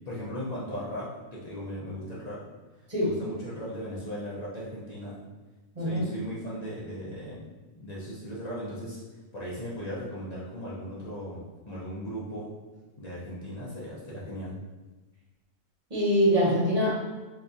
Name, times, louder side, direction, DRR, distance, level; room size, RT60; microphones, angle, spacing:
voice 1, 0.1-2.4 3.0-5.2 5.8-7.4 7.8-9.0 9.3-12.5 13.0-14.5, equal, 55° left, -8 dB, 0.4 m, -37 dB
voice 2, 5.7-6.1 15.9-17.0, equal, 30° right, -7 dB, 0.9 m, -24 dB
3.5 x 2.9 x 2.6 m, 1.2 s
omnidirectional pair, 1.6 m